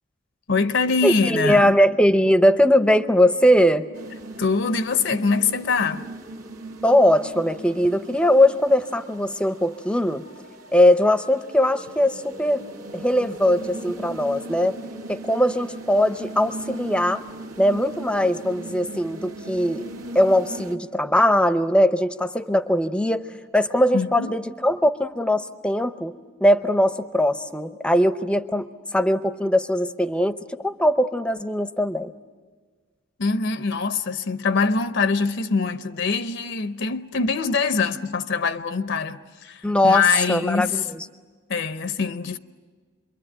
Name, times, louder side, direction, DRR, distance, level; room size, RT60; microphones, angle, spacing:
voice 1, 0.5-1.7 4.4-6.1 23.9-24.4 33.2-40.8 41.5-42.4, left 4 dB, 60° left, 0.7 m, -23 dB
voice 2, 1.0-3.9 6.8-10.2 10.7-12.6 12.9-14.8 15.1-17.2 17.6-19.9 20.1-23.3 23.5-32.1 39.6-41.1, left 1 dB, 5° left, 0.7 m, -20 dB
sound 1, 3.9-20.8, right 2 dB, 85° right, 2.2 m, -39 dB
27.0 x 23.0 x 8.9 m
head